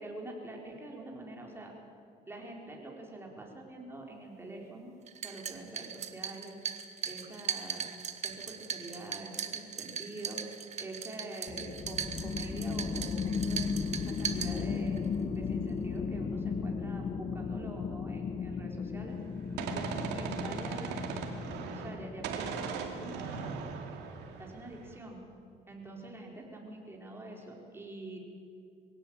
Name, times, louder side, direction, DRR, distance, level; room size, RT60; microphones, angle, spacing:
voice 1, 0.0-1.7 2.3-4.9 5.2-6.6 7.1-7.9 8.2-13.7 14.1-15.0 15.3-19.2 19.7-21.0 21.7-23.6 24.4-25.2 25.7-28.2, right 2 dB, 15° right, 0 dB, 4.4 m, -45 dB
sound 1, 5.1-15.1, right 7 dB, 40° right, 1.4 m, -39 dB
sound 2, 11.5-23.5, left 5 dB, 35° left, 1.0 m, -36 dB
Gunshot gunfire, 19.1-22.0 22.2-25.0, right 6 dB, 85° right, 2.5 m, -38 dB
22.0 x 17.0 x 8.8 m, 2.4 s
cardioid pair, 110°, 17 cm